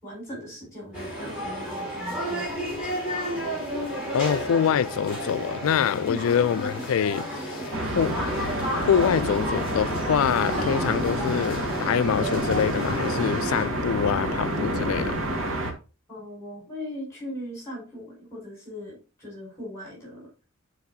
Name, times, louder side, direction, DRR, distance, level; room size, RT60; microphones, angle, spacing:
voice 1, 0.0-2.7 6.0-6.2 16.1-20.3, equal, 15° left, 4.7 m, -39 dB
sound 1, 0.9-13.6, equal, 5° right, 3.9 m, -32 dB
voice 2, 4.1-7.6 7.9-8.2 8.7-15.2, left 8 dB, 75° left, 0.3 m, -25 dB
sound 2, 7.7-15.7, right 1 dB, 80° right, 1.8 m, -29 dB
11.5 x 4.8 x 2.8 m
head